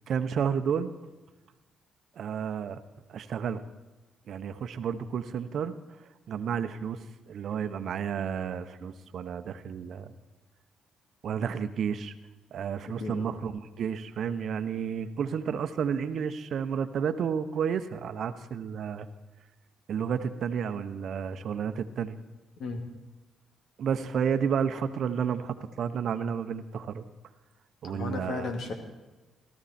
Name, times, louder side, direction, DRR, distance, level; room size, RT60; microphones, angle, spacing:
voice 1, 0.1-0.9 2.2-2.8 3.1-3.6 4.3-5.7 6.3-7.0 7.3-10.1 11.2-12.1 12.5-19.1 19.9-22.2 23.8-27.0 27.8-28.5, right 7 dB, 65° right, 11 dB, 0.9 m, -31 dB
voice 2, 27.8-28.7, left 3 dB, 70° left, 5 dB, 2.3 m, -34 dB
17.5 x 13.5 x 4.3 m, 1.2 s
cardioid pair, 90°, 0 cm